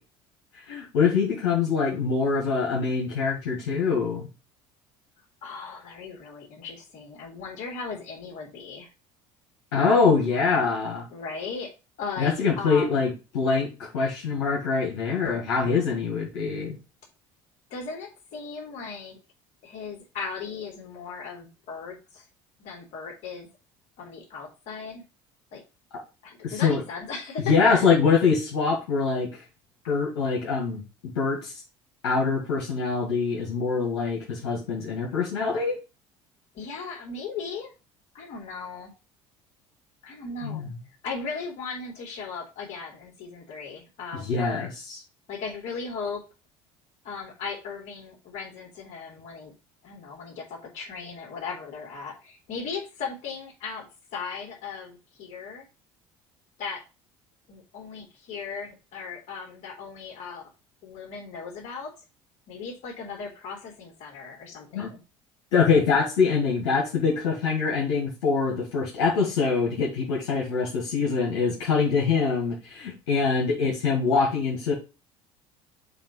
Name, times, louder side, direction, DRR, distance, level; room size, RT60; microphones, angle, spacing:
voice 1, 0.6-4.3 9.7-11.1 12.2-16.8 26.4-26.8 27.4-29.4 29.9-30.8 31.1-31.5 32.0-35.8 40.4-40.7 44.2-45.0 64.7-64.9 65.5-74.7, left 5 dB, 90° left, -3 dB, 1.8 m, -24 dB
voice 2, 5.4-8.9 11.1-11.7 12.0-13.1 17.7-19.2 19.6-22.2 22.6-23.5 24.0-25.0 25.5-25.6 26.2-28.0 36.5-37.7 38.1-38.9 40.0-40.7 41.0-44.7 45.3-46.2 47.0-49.5 49.8-53.9 54.1-55.6 56.6-56.8 57.5-60.5 60.8-61.9 62.5-65.0, left 5 dB, 65° left, 0 dB, 3.1 m, -37 dB
7.1 x 3.0 x 5.3 m, 0.29 s
supercardioid pair, 80°, 13 cm